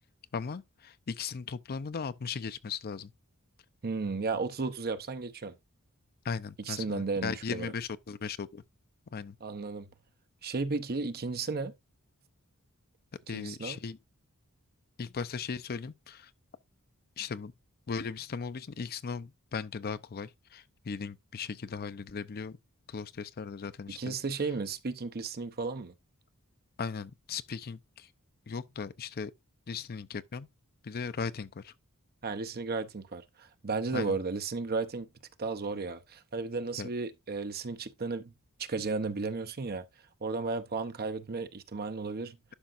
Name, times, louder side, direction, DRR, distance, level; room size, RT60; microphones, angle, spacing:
voice 1, 0.3-3.1 6.2-8.6 9.1-9.4 13.3-14.0 15.0-16.3 17.2-17.5 17.9-22.6 22.9-24.2 26.8-28.1 28.5-29.3 29.7-30.5 30.8-31.7 33.9-34.2 36.8-36.9, left 5 dB, 45° left, 0.5 m, -37 dB
voice 2, 3.8-5.5 6.7-7.7 9.4-9.9 10.4-11.7 13.3-13.8 23.9-25.9 32.2-35.1 35.4-38.3 38.6-39.9 40.2-42.4, right 4 dB, 45° right, 0.8 m, -34 dB
11.5 x 5.7 x 2.5 m
head